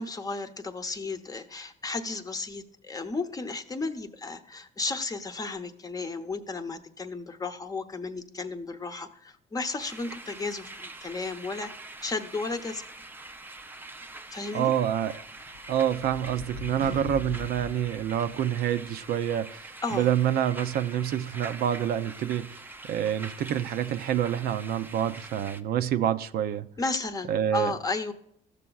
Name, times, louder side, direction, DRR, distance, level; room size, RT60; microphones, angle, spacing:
voice 1, 0.0-11.7 12.0-12.8 14.3-14.7 19.8-20.1 26.8-28.1, left 3 dB, 20° left, 0.8 m, -33 dB
sound 1, 9.8-25.6, right 2 dB, 10° right, 0.5 m, -44 dB
voice 2, 14.5-15.2 15.7-22.6 22.9-26.7 27.3-27.7, right 10 dB, 65° right, 0.5 m, -27 dB
sound 2, 15.3-18.9, left 6 dB, 55° left, 0.4 m, -41 dB
13.5 x 6.8 x 2.3 m
cardioid pair, 110°, 17 cm